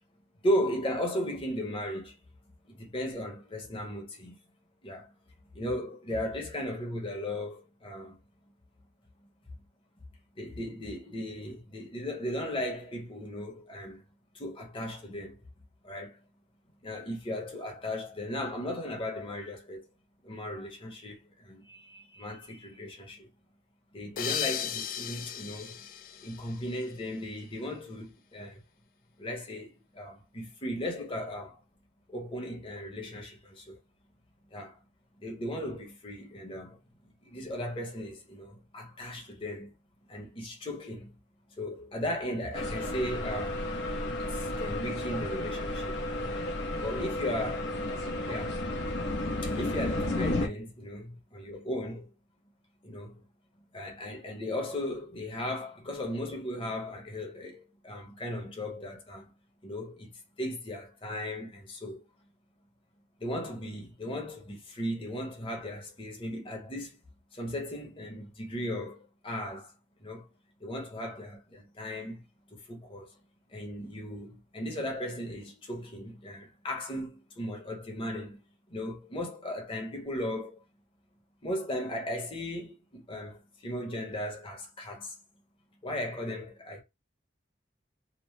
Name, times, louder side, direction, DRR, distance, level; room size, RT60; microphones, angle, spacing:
voice 1, 0.4-2.2 2.7-4.4 4.8-5.1 5.5-8.2 10.4-14.0 14.3-15.4 15.8-16.2 16.8-19.9 20.2-23.3 23.9-25.9 26.2-28.6 29.2-31.6 32.1-33.8 34.5-34.8 35.2-36.8 37.2-39.7 40.1-41.1 41.6-43.6 44.1-46.4 46.8-47.6 48.2-48.6 49.4-52.1 52.8-53.2 53.7-59.3 59.6-62.0 63.2-67.0 67.3-69.7 70.0-70.3 70.6-72.2 72.5-73.2 73.5-78.4 78.7-80.6 81.4-85.2 85.8-86.8, left 1 dB, 30° left, 0.9 m, -36 dB
sound 1, 24.2-27.2, left 9 dB, 50° left, 0.3 m, -36 dB
sound 2, 42.5-50.5, left 1 dB, 70° left, 0.7 m, -32 dB
2.9 x 2.0 x 3.2 m
head